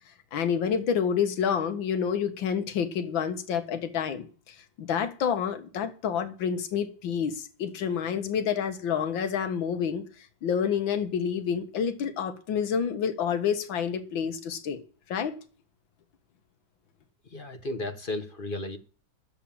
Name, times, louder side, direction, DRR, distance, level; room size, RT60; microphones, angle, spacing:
voice 1, 0.3-10.0 10.4-14.8 15.1-15.4, left 7 dB, 75° left, 1.8 m, -28 dB
voice 2, 17.3-18.8, left 2 dB, 40° left, 0.8 m, -34 dB
10.0 x 7.3 x 8.6 m
omnidirectional pair, 2.1 m